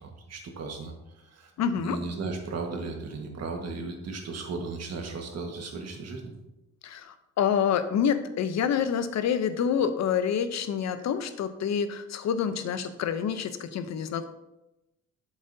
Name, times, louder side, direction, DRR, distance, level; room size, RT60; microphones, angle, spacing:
voice 1, 0.0-6.3, right 3 dB, 55° right, 2 dB, 1.6 m, -36 dB
voice 2, 1.6-2.0 6.8-14.3, left 7 dB, 60° left, 10 dB, 0.8 m, -27 dB
8.0 x 7.1 x 2.7 m, 0.92 s
cardioid pair, 90°, 30 cm